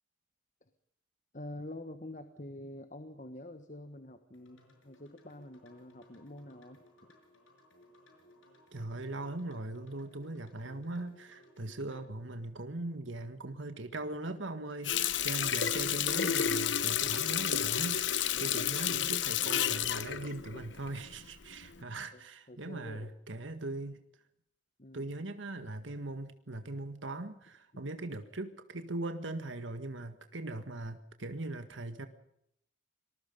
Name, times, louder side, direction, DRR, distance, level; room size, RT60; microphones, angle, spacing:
voice 1, 1.3-6.8 11.6-11.7 15.2-15.4 18.3-18.7 21.6-21.8 22.1-22.2 22.5-23.1 24.8-25.1 27.7-27.8, left 1 dB, 40° left, 8 dB, 1.4 m, -47 dB
sound 1, 4.3-12.0, left 1 dB, 90° left, 6.2 m, -61 dB
voice 2, 8.7-24.0 24.9-32.1, right 2 dB, 75° right, 8 dB, 1.7 m, -40 dB
Water tap faucet, 14.8-21.2 21.6-21.8, left 9 dB, 70° left, 1.1 m, -31 dB
26.0 x 20.5 x 5.4 m, 0.74 s
head